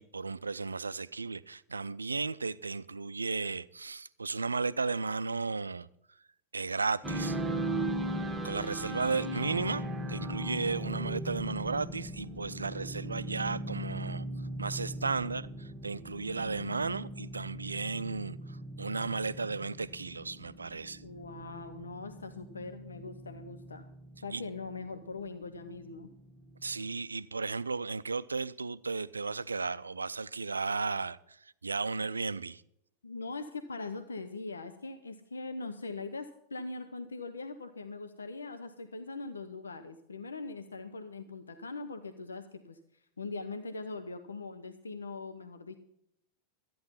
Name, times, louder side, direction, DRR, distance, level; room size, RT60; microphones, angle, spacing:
voice 1, 0.0-5.9 6.5-7.4 8.4-14.2 14.6-21.0 24.3-24.4 26.6-32.6, right 4 dB, 75° right, 0.4 m, -34 dB
sound 1, 7.0-27.0, right 1 dB, 10° right, 1.4 m, -39 dB
voice 2, 21.0-23.9 24.2-26.1 33.0-42.8 43.2-45.8, left 3 dB, 75° left, 0.7 m, -41 dB
13.5 x 9.4 x 5.6 m
figure-of-eight pair, 90°, 0 cm